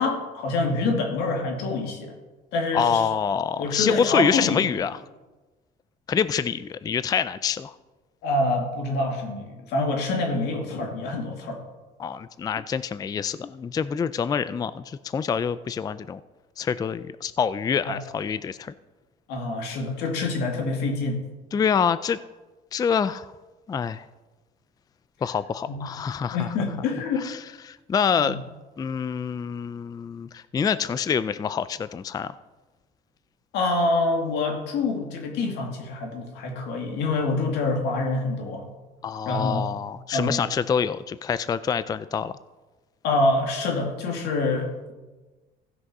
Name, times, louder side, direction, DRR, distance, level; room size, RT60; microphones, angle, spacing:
voice 1, 0.0-2.1 2.5-3.0 3.6-4.8 8.2-11.6 17.9-18.0 19.3-21.2 25.7-25.9 26.3-27.3 28.2-28.3 33.5-38.7 39.3-39.6 40.1-40.5 43.0-44.9, left 2 dB, 85° left, 2 dB, 2.3 m, -26 dB
voice 2, 2.7-5.0 6.1-7.7 12.0-16.2 16.6-18.7 21.5-22.2 22.7-23.3 23.7-24.0 25.2-26.5 27.2-28.4 28.8-32.3 39.0-42.3, left 7 dB, 20° left, 15 dB, 0.3 m, -26 dB
15.5 x 6.2 x 5.4 m, 1.2 s
cardioid pair, 110°, 17 cm